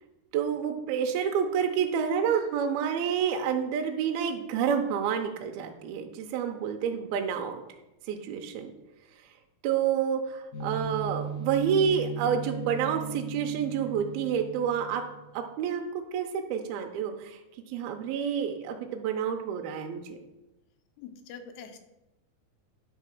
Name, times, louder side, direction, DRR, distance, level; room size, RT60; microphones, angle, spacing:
voice 1, 0.3-7.6 8.1-8.7 9.6-15.0 15.3-17.4 17.7-20.2, right 7 dB, 80° right, 4 dB, 2.4 m, -29 dB
sound 1, 10.5-15.4, right 5 dB, 60° left, 0.9 m, -37 dB
voice 2, 21.0-21.8, left 6 dB, 85° left, 6 dB, 2.7 m, -44 dB
10.0 x 3.7 x 6.3 m, 0.98 s
omnidirectional pair, 4.7 m